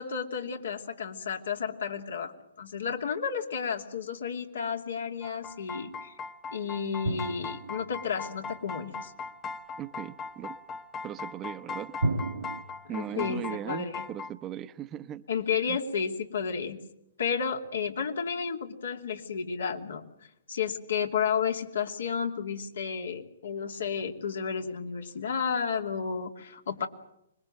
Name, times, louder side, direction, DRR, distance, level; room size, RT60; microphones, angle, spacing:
voice 1, 0.0-2.3 2.6-6.2 6.5-9.1 12.8-14.1 15.3-16.8 17.2-20.0 20.5-26.9, left 6 dB, 70° left, 2.8 m, -32 dB
sound 1, 5.2-14.3, left 4 dB, 20° left, 1.0 m, -39 dB
sound 2, 7.0-8.7 12.0-12.6, right 2 dB, 75° right, 1.4 m, -32 dB
voice 2, 9.8-10.6 11.0-12.0 12.9-15.3 15.7-15.8, right 11 dB, 25° right, 0.9 m, -38 dB
25.5 x 21.5 x 7.8 m
hypercardioid pair, 125°, 0 cm